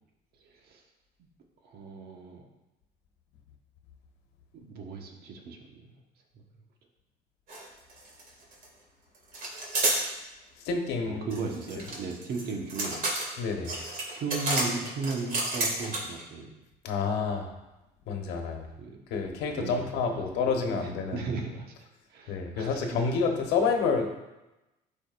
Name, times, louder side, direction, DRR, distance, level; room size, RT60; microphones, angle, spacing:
voice 1, 0.4-0.8 1.2-1.3 1.6-2.5 4.5-5.9 6.3-6.4 11.0-13.0 13.3-13.4 14.1-16.6 18.8-19.0 19.5-21.7 22.1-23.1, right 4 dB, 70° right, 1 dB, 1.3 m, -37 dB
sound 1, 7.5-7.6 7.9-8.7 9.3-10.0 11.3-16.2, right 2 dB, 55° right, 2.1 m, -30 dB
voice 2, 10.6-11.3 13.4-13.7 16.8-17.5 18.1-18.7 19.1-21.3 22.3-24.1, left 5 dB, 90° left, 3 dB, 1.1 m, -28 dB
12.5 x 5.1 x 2.5 m, 1.0 s
cardioid pair, 110°, 17 cm